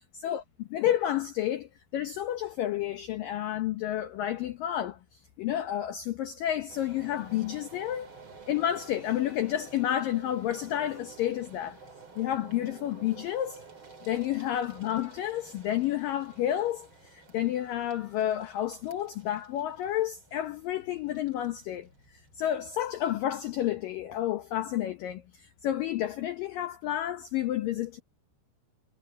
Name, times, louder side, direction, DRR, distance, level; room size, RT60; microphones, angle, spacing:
voice 1, 0.2-8.1 8.5-11.8 12.2-13.7 14.1-21.9 22.4-28.0, left 12 dB, 85° left, 1.9 m, -30 dB
sound 1, 6.7-23.5, right 4 dB, 30° right, 3.3 m, -52 dB
omnidirectional pair, 5.4 m